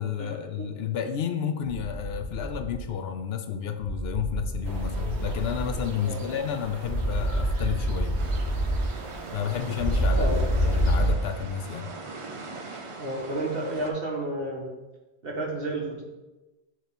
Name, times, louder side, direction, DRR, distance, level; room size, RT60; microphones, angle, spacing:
voice 1, 0.0-8.2 9.3-11.9, left 8 dB, 70° left, 6 dB, 0.8 m, -31 dB
sound 1, 1.6-2.8 3.8-5.8 6.8-8.8 9.8-11.1, equal, 40° left, 1.1 m, -27 dB
sound 2, 4.6-11.1, right 3 dB, 80° right, 1.0 m, -41 dB
sound 3, 8.2-13.9, right 3 dB, 35° right, 0.6 m, -41 dB
voice 2, 13.0-14.7 15.2-16.0, right 2 dB, 60° right, -1 dB, 1.5 m, -31 dB
6.6 x 3.1 x 5.3 m, 1.1 s
omnidirectional pair, 1.1 m